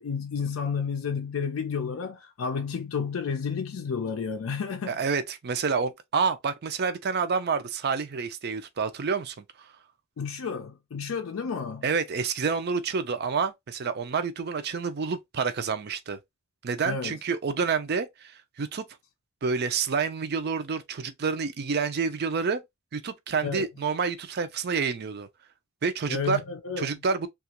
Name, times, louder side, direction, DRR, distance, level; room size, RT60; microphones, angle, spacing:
voice 1, 0.0-5.0 10.2-11.9 16.8-17.2 23.4-23.7 26.1-26.9, left 6 dB, 70° left, 0.4 m, -31 dB
voice 2, 4.9-9.4 11.8-16.2 16.6-18.8 19.4-22.6 22.9-25.3 25.8-26.4 26.8-27.3, right 5 dB, 50° right, 0.5 m, -28 dB
2.9 x 2.4 x 2.9 m
head